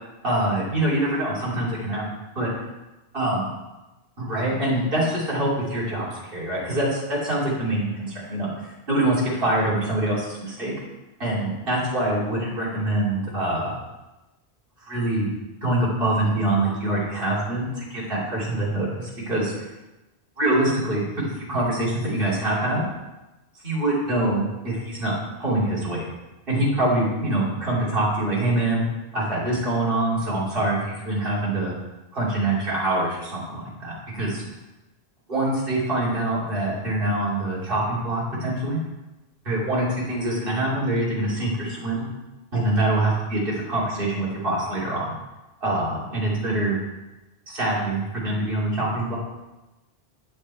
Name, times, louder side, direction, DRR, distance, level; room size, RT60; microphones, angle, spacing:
voice 1, 0.2-2.0 2.3-2.5 3.1-3.4 4.2-10.7 11.2-13.8 14.8-15.3 15.6-19.5 20.4-22.8 23.6-26.0 26.5-28.8 29.1-31.7 32.1-34.4 35.3-38.8 39.4-42.1 42.5-45.1 45.6-46.8 47.5-49.2, right 1 dB, 60° right, -6 dB, 3.1 m, -24 dB
8.1 x 7.8 x 4.3 m, 1.0 s
omnidirectional pair, 1.1 m